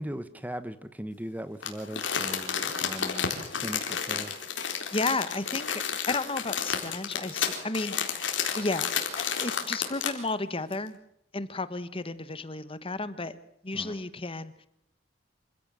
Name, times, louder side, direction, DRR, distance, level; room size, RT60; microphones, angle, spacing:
voice 1, 0.0-3.3 3.6-4.4 13.7-13.9, equal, 10° right, 13 dB, 1.1 m, -38 dB
Crumpling crinkling, 1.6-10.3 10.7-10.8, left 7 dB, 75° left, 3.9 m, -31 dB
voice 2, 4.9-5.8 6.1-8.0 8.5-11.0 11.3-13.4 13.6-14.5, left 3 dB, 30° left, 14 dB, 1.2 m, -32 dB
27.0 x 16.0 x 7.6 m, 0.75 s
head